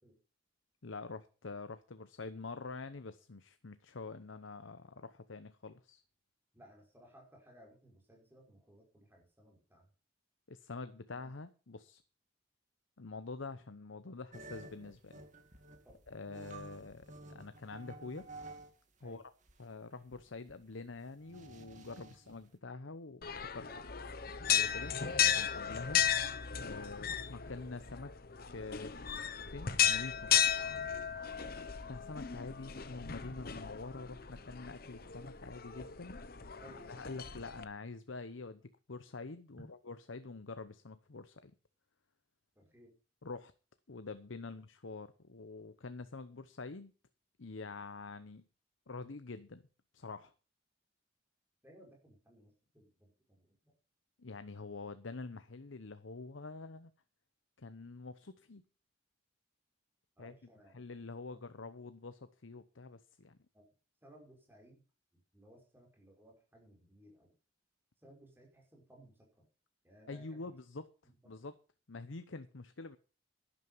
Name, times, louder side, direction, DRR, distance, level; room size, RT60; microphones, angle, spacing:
voice 1, 0.8-6.0 10.5-12.0 13.0-15.1 16.1-18.3 19.0-19.2 19.6-23.7 24.5-24.9 25.3-26.0 26.6-28.1 28.5-30.5 31.9-36.2 36.9-41.5 43.2-43.5 43.9-46.9 47.4-48.4 48.9-49.6 49.9-50.3 54.2-56.9 57.6-58.6 60.2-60.3 60.7-63.4 70.1-70.9 71.3-71.5 71.9-73.0, left 3 dB, 85° left, 0.9 m, -46 dB
voice 2, 6.5-9.9 11.1-11.2 15.8-16.3 19.0-19.2 23.6-23.8 24.7-24.9 31.4-31.6 36.6-37.1 42.6-43.0 44.5-44.6 51.6-53.7 60.2-60.8 61.3-61.4 63.5-63.7 64.0-64.8 65.3-67.3 68.0-69.5 69.8-70.4 71.0-71.5, equal, 10° right, 5.5 m, -60 dB
sound 1, 14.3-18.7 19.0-22.4, right 2 dB, 40° right, 2.4 m, -52 dB
sound 2, 23.2-37.6, left 9 dB, 50° left, 1.0 m, -35 dB
11.5 x 11.0 x 5.6 m
head